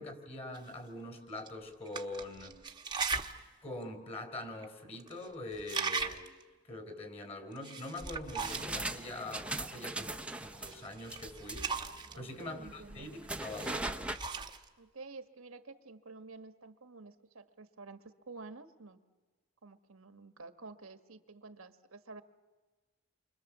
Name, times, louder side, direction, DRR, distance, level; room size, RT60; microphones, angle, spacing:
voice 1, 0.0-2.6 3.6-6.3 6.7-11.7 12.1-14.0, left 2 dB, 30° left, 7 dB, 4.4 m, -44 dB
sound 1, 0.5-0.6 1.4-1.5 1.9-3.4 3.8-3.9 4.6-4.7 4.9-5.3 5.5-6.4 7.5-8.8 10.6-12.2 13.3-14.7, right 4 dB, 20° right, 1.1 m, -38 dB
sound 2, 8.4-14.2, right 2 dB, 5° right, 0.8 m, -41 dB
voice 2, 12.1-13.1 14.8-18.0 18.3-19.0 19.6-22.2, right 3 dB, 85° right, 8 dB, 1.4 m, -50 dB
29.0 x 25.0 x 7.3 m, 1.3 s
head